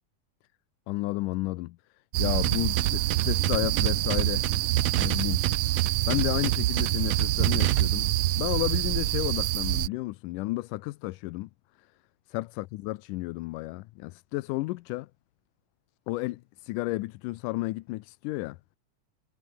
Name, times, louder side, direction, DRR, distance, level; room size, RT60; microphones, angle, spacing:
voice 1, 0.9-1.8 2.2-4.5 5.0-5.4 6.1-11.5 11.8-11.9 12.3-15.1 16.1-18.6, left 20 dB, 80° left, 2.1 m, -32 dB
sound 1, 2.1-9.9, right 15 dB, 85° right, 1.4 m, -26 dB
sound 2, 2.4-7.8, right 13 dB, 65° right, 2.0 m, -29 dB
omnidirectional pair, 3.8 m